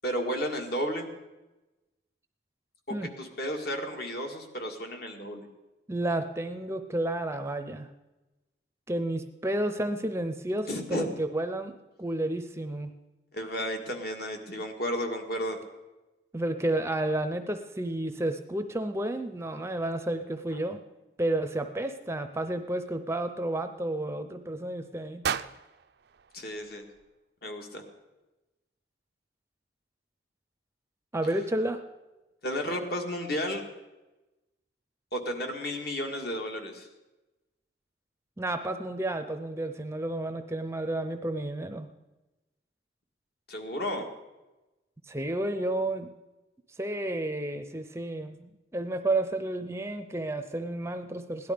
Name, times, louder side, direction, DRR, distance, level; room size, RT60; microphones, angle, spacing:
voice 1, 0.0-1.1 3.0-5.5 10.7-11.1 13.3-15.6 26.3-26.8 27.4-27.8 32.4-33.6 35.1-36.9 43.5-44.1, equal, 55° left, 3 dB, 1.9 m, -33 dB
voice 2, 5.9-7.9 8.9-12.9 16.3-20.8 21.2-25.2 31.1-31.8 38.4-41.9 45.1-46.1 46.8-51.5, right 1 dB, 15° right, 8 dB, 0.6 m, -31 dB
sound 1, 25.2-27.4, right 7 dB, 60° right, 0.4 m, -36 dB
17.0 x 11.5 x 5.1 m, 1.1 s
head